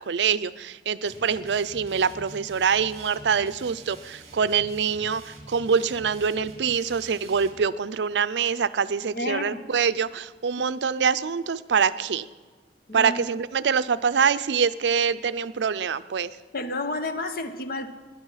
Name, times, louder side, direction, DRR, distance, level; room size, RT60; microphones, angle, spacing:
voice 1, 0.0-12.3 12.9-16.3, right 6 dB, 75° right, 0.5 m, -25 dB
sound 1, 1.0-7.6, right 2 dB, 40° right, 2.2 m, -46 dB
voice 2, 9.1-9.7 12.9-13.2 16.5-17.9, left 2 dB, 55° left, 1.0 m, -30 dB
17.5 x 11.0 x 5.6 m
head